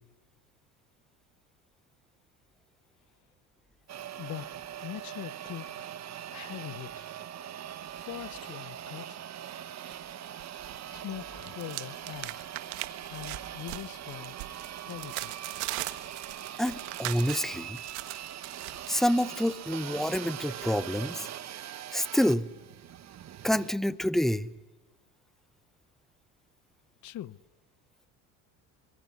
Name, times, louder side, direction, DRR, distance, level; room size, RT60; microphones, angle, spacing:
sound 1, 3.9-23.7, right 10 dB, 40° right, 1.3 m, -42 dB
voice 1, 4.8-5.9 6.3-7.1 7.9-9.2 10.9-12.4 13.1-14.4 14.9-15.3 27.0-27.4, left 13 dB, 45° left, 0.9 m, -42 dB
sound 2, 9.9-10.8 11.1-18.9, right 20 dB, 80° right, 1.5 m, -40 dB
voice 2, 16.6-17.8 18.9-21.3 21.9-22.5 23.4-24.5, equal, ahead, 0.8 m, -27 dB
25.5 x 22.5 x 9.6 m
supercardioid pair, 95°, 39 cm